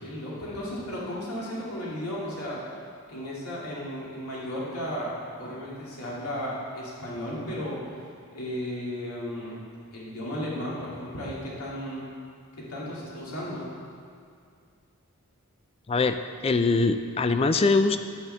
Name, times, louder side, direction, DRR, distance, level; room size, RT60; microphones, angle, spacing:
voice 1, 0.0-2.6 3.1-7.8 8.3-9.6 9.9-12.1 12.6-13.7, equal, 85° left, -6 dB, 2.5 m, -34 dB
voice 2, 16.4-18.0, left 3 dB, 25° left, 9 dB, 0.3 m, -22 dB
9.8 x 5.0 x 7.7 m, 2.3 s
head